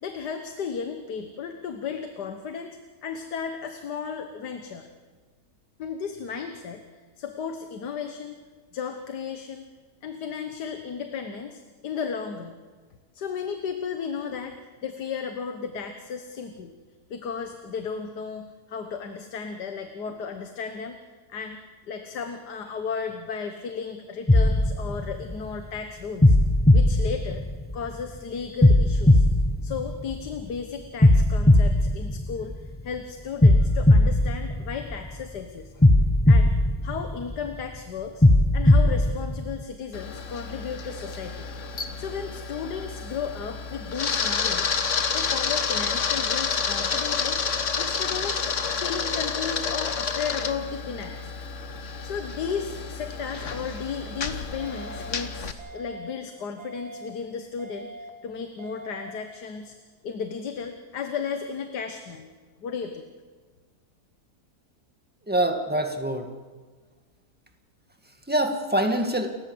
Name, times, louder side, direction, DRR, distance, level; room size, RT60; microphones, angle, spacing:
voice 1, 0.0-4.9 5.8-6.8 7.2-8.4 8.7-9.7 10.0-12.6 13.1-16.7 17.1-21.0 21.3-21.6 21.9-26.4 26.7-27.5 27.7-29.3 29.6-35.8 36.3-36.5 36.8-38.3 38.5-41.5 42.0-44.7 45.1-47.4 47.8-51.3 52.0-59.8 60.0-62.3 62.6-63.1, left 6 dB, 80° left, 6 dB, 1.8 m, -34 dB
sound 1, 24.3-25.6 26.2-27.9 28.6-30.4 31.0-32.8 33.4-35.2 35.8-37.5 38.2-39.6, left 1 dB, 10° left, 0.5 m, -19 dB
Camera, 39.9-55.5, left 5 dB, 50° left, 1.5 m, -29 dB
sound 2, 54.6-55.1 55.6-56.1 56.6-57.1 57.6-58.1 58.6-59.1, right 2 dB, 40° right, 2.5 m, -42 dB
voice 2, 65.3-66.3 68.3-69.3, right 1 dB, 5° right, 4 dB, 1.9 m, -25 dB
29.5 x 14.5 x 7.9 m, 1.4 s
omnidirectional pair, 1.7 m